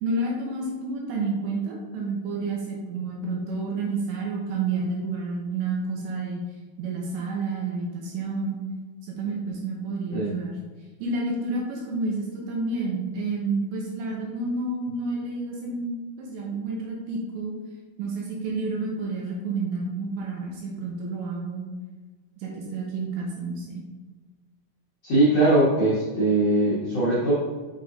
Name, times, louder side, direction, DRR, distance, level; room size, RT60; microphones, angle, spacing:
voice 1, 0.0-6.4 6.8-8.6 9.0-10.6 11.0-17.5 18.0-21.6 22.4-23.8, right 3 dB, 75° right, -2 dB, 2.8 m, -30 dB
voice 2, 25.0-27.3, right 2 dB, 80° left, -9 dB, 1.4 m, -21 dB
6.8 x 6.0 x 2.6 m, 1.3 s
omnidirectional pair, 5.7 m